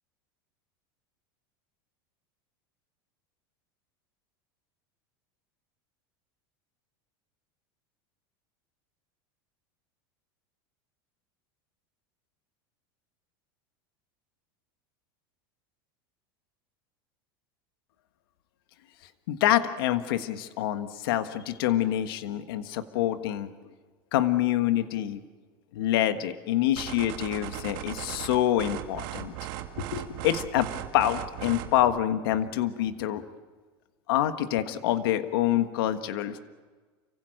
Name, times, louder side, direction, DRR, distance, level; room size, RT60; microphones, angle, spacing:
voice 1, 19.3-23.7 24.1-25.2 25.7-29.3 29.9-33.2 34.1-36.4, left 12 dB, 75° left, 10 dB, 1.5 m, -26 dB
sound 1, 26.8-31.8, right 13 dB, 65° right, 2.4 m, -38 dB
29.0 x 16.0 x 9.0 m, 1.4 s
supercardioid pair, 120°, 12 cm